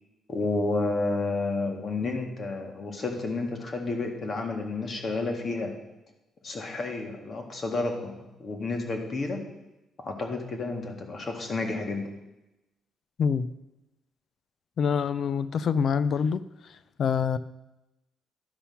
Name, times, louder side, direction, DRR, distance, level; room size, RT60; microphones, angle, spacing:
voice 1, 0.3-5.7 6.4-9.4 10.0-12.1, left 3 dB, 45° left, 3 dB, 1.9 m, -31 dB
voice 2, 14.8-16.4 17.0-17.4, left 6 dB, 60° left, 15 dB, 0.5 m, -25 dB
11.5 x 5.7 x 5.7 m, 0.96 s
cardioid pair, 90°, 0 cm